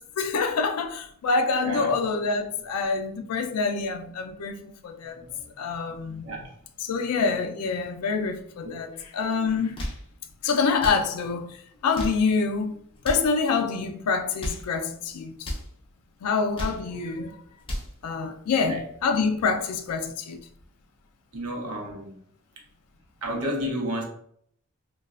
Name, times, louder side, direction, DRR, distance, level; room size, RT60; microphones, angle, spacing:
voice 1, 0.2-5.2 5.6-6.2 6.8-9.8 10.4-12.8 13.0-15.5 16.2-17.4 18.0-20.4, left 4 dB, 90° left, 0.4 m, -26 dB
voice 2, 1.6-2.0 5.2-5.3 5.9-6.4 18.7-18.8 21.3-22.1 23.2-24.0, equal, 80° right, 0.8 m, -31 dB
sound 1, 9.6-10.1 10.7-11.1 11.8-12.3 13.0-13.3 14.2-14.7 15.4-15.7 16.3-16.9 17.4-18.0, equal, 25° left, 0.6 m, -34 dB
3.1 x 2.3 x 2.4 m
head